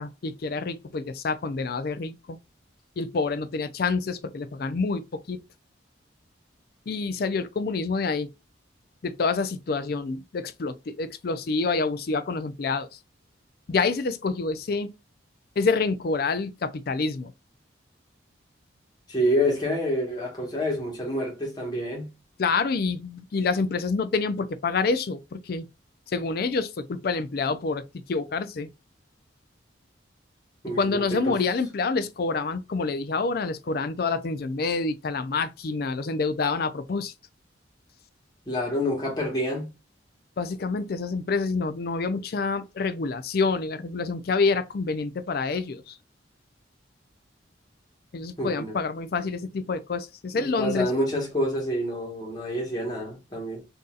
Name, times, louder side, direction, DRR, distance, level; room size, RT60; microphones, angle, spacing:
voice 1, 0.0-2.4 3.0-5.4 6.9-8.3 9.0-13.0 13.7-14.9 15.6-17.3 22.4-25.7 26.1-28.7 30.8-37.1 40.4-46.0 48.1-50.9, left 4 dB, 50° left, 0.4 m, -27 dB
voice 2, 19.1-22.1 30.6-31.4 38.5-39.7 48.4-48.8 50.3-53.6, equal, 20° left, 1.3 m, -27 dB
3.8 x 2.7 x 2.4 m
head